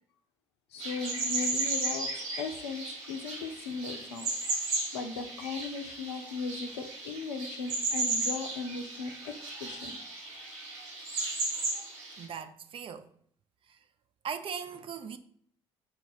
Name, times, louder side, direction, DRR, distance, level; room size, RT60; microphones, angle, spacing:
voice 1, 0.7-4.3 4.9-9.3 9.6-10.0, left 4 dB, 75° left, 0.5 m, -37 dB
sound 1, 0.8-12.3, right 3 dB, 70° right, 1.3 m, -35 dB
voice 2, 12.2-13.1 13.7-13.8 14.2-15.2, right 6 dB, 40° right, 0.5 m, -39 dB
5.3 x 2.3 x 3.9 m
figure-of-eight pair, 50°, 14 cm